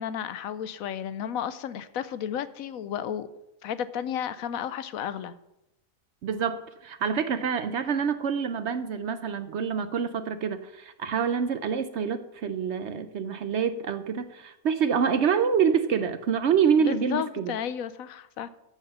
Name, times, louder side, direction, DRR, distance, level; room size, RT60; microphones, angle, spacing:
voice 1, 0.0-3.3 3.6-5.3 16.8-18.5, left 9 dB, 75° left, 14 dB, 1.0 m, -33 dB
voice 2, 6.2-17.5, right 7 dB, 60° right, 10 dB, 0.8 m, -26 dB
14.0 x 4.9 x 6.6 m, 0.89 s
omnidirectional pair, 1.5 m